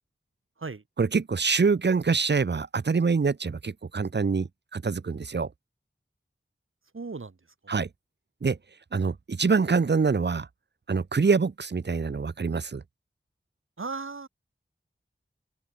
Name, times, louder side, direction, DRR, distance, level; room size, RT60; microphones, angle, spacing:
voice 1, 1.0-5.5 7.7-7.9 8.4-8.6 8.9-10.5 10.9-12.8, right 5 dB, 55° right, 0.8 m, -25 dB
voice 2, 6.9-7.4 7.6-7.8 13.8-14.3, right 4 dB, 85° right, 3.1 m, -36 dB
open air
wide cardioid pair, 60°, 20 cm